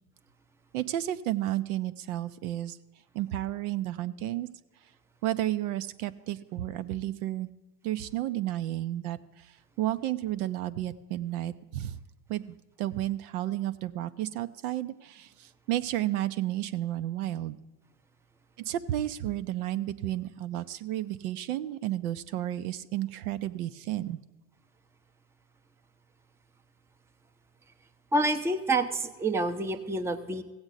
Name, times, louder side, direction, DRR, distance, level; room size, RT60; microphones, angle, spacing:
voice 1, 0.7-2.8 3.1-4.5 5.2-7.5 7.8-12.0 12.3-17.6 18.7-24.2, right 13 dB, 65° right, 12 dB, 0.6 m, -32 dB
voice 2, 28.1-30.4, right 2 dB, 5° right, 7 dB, 0.6 m, -28 dB
16.0 x 7.9 x 4.0 m, 1.2 s
hypercardioid pair, 80°, 48 cm